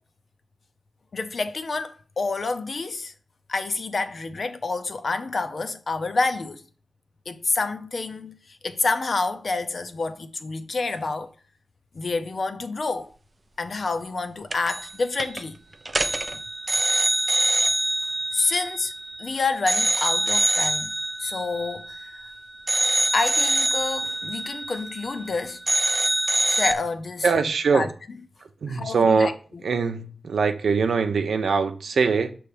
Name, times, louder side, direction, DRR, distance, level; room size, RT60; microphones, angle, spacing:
voice 1, 1.1-3.1 3.5-6.6 7.3-11.3 11.9-13.1 13.6-15.6 16.3-16.4 18.3-18.9 19.2-20.9 21.2-22.2 23.1-25.6 26.5-27.9 28.7-29.3, left 3 dB, 45° left, 0.6 m, -28 dB
sound 1, 14.5-14.9 15.2-15.4 15.9-19.2 19.7-22.3 22.7-25.3 25.7-26.7, right 1 dB, 30° right, 0.4 m, -24 dB
voice 2, 27.2-27.9 28.6-29.3 29.6-32.4, right 5 dB, 85° right, 0.6 m, -22 dB
6.9 x 3.1 x 4.8 m
wide cardioid pair, 175°, 0 cm